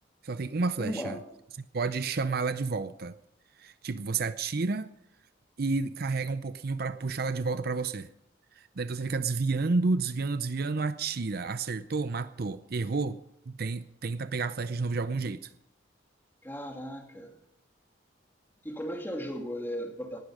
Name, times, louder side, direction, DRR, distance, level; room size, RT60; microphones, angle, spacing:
voice 1, 0.2-1.2 1.7-3.2 3.6-4.9 5.6-8.1 8.5-13.2 13.5-15.5, right 4 dB, 55° right, 13 dB, 0.6 m, -30 dB
voice 2, 0.8-1.2 16.4-17.3 18.6-20.2, equal, 10° left, 2 dB, 2.7 m, -36 dB
19.0 x 11.5 x 4.9 m, 0.78 s
head